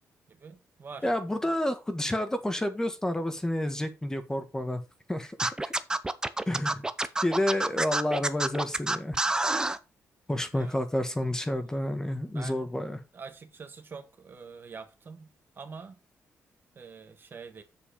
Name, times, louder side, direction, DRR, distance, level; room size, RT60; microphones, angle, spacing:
voice 1, 0.3-1.1 10.5-10.8 12.3-12.9 13.1-16.0 16.7-17.6, right 5 dB, 40° right, 1.5 m, -45 dB
voice 2, 1.0-4.8 5.1-5.7 6.5-6.8 7.2-9.2 10.3-13.0, left 1 dB, 10° left, 1.5 m, -30 dB
Scratching (performance technique), 5.4-9.8, right 2 dB, 15° right, 0.8 m, -27 dB
7.7 x 6.8 x 5.1 m
cardioid pair, 115°, 5 cm